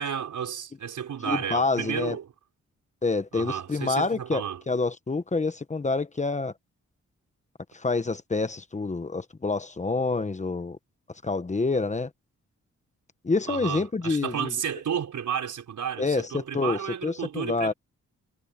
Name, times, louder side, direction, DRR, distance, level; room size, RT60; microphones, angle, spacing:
voice 1, 0.0-2.3 3.3-4.6 13.5-17.7, right 8 dB, 80° right, 4.9 m, -32 dB
voice 2, 1.2-2.2 3.0-6.5 7.7-10.8 11.2-12.1 13.2-14.5 16.0-17.7, left 3 dB, 25° left, 1.1 m, -27 dB
wide cardioid pair, 130°, 30 cm